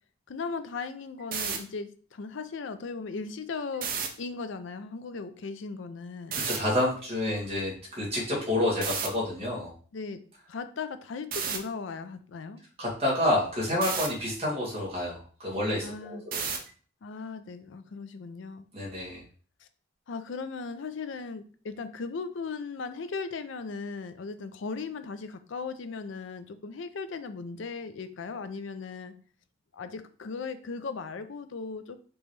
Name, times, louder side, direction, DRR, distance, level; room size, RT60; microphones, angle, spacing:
voice 1, 0.3-3.9 4.2-6.4 9.9-10.2 10.5-12.6 15.8-16.2 17.0-18.7 19.6-19.7 20.1-29.2 29.7-32.0, left 4 dB, 65° left, 11 dB, 0.4 m, -37 dB
sound 1, 1.2-1.6 3.7-4.1 6.3-6.6 8.8-9.1 11.3-11.6 13.8-14.1 16.3-16.7, right 6 dB, 45° right, 0.6 m, -31 dB
voice 2, 6.4-9.7 12.8-16.4 18.7-19.2, left 1 dB, 30° right, -5 dB, 1.8 m, -29 dB
5.2 x 3.0 x 3.2 m, 0.43 s
head